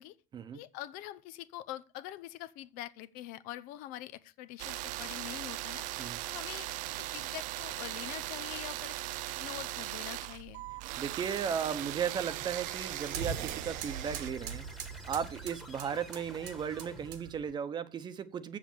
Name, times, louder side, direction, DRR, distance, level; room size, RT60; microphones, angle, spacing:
voice 1, 0.5-9.0 9.3-10.6, left 14 dB, 80° left, 0.7 m, -45 dB
sound 1, 4.6-14.3, right 18 dB, 65° right, 0.4 m, -39 dB
sound 2, 10.8-17.5, right 7 dB, 85° right, 1.7 m, -44 dB
voice 2, 11.0-18.6, right 7 dB, 30° right, 0.8 m, -36 dB
sound 3, 12.1-17.1, left 1 dB, ahead, 1.3 m, -50 dB
7.4 x 6.7 x 7.3 m
cardioid pair, 145°, 14 cm